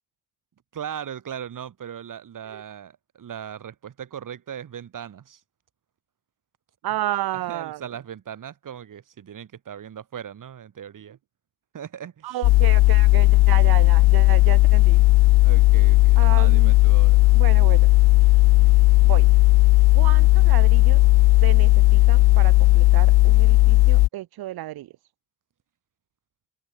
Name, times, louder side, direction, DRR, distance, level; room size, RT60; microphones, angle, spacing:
voice 1, 0.7-5.4 7.3-11.2 11.7-12.4 15.4-17.2, right 9 dB, 55° right, 4.8 m, -38 dB
voice 2, 6.8-7.8 12.2-15.0 16.2-16.7 17.3-17.9 19.0-19.3 19.9-21.0 21.4-24.9, right 15 dB, 80° right, 1.3 m, -32 dB
sound 1, 12.4-24.1, left 20 dB, 85° left, 0.6 m, -15 dB
cardioid pair, 90°, 37 cm